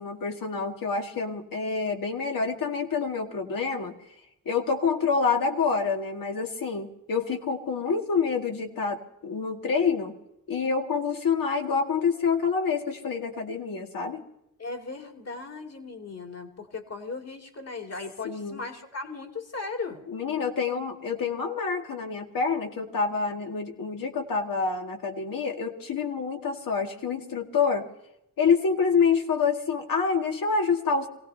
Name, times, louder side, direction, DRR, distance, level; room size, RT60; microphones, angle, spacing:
voice 1, 0.0-3.9 4.5-10.2 10.5-14.2 18.2-18.6 20.1-27.9 28.4-31.1, left 5 dB, 75° left, 1 dB, 2.2 m, -27 dB
voice 2, 14.6-20.0, left 3 dB, 45° left, 3 dB, 2.7 m, -37 dB
27.5 x 17.5 x 2.8 m, 0.84 s
cardioid pair, 75°, 34 cm